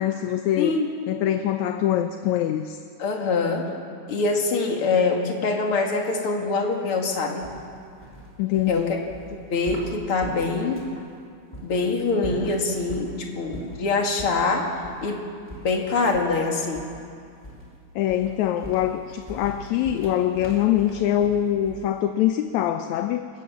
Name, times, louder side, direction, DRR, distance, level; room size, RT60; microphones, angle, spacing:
voice 1, 0.0-0.8 1.1-2.8 8.4-8.9 18.0-23.3, left 11 dB, 75° left, 8 dB, 1.9 m, -24 dB
voice 2, 0.6-0.9 3.0-3.7 4.1-7.5 8.7-9.0 9.3-10.9 11.6-14.7 15.0-15.3 15.6-16.8, left 3 dB, 45° left, 1 dB, 2.8 m, -24 dB
sound 1, 7.4-11.0 11.5-11.7 12.1-13.1 13.5-13.8 14.2-14.4 14.8-15.0 15.5-16.4 16.7-17.1 17.4-17.7 18.1-22.0, equal, 15° left, 3.2 m, -39 dB
28.0 x 15.5 x 7.3 m, 2.3 s
omnidirectional pair, 3.8 m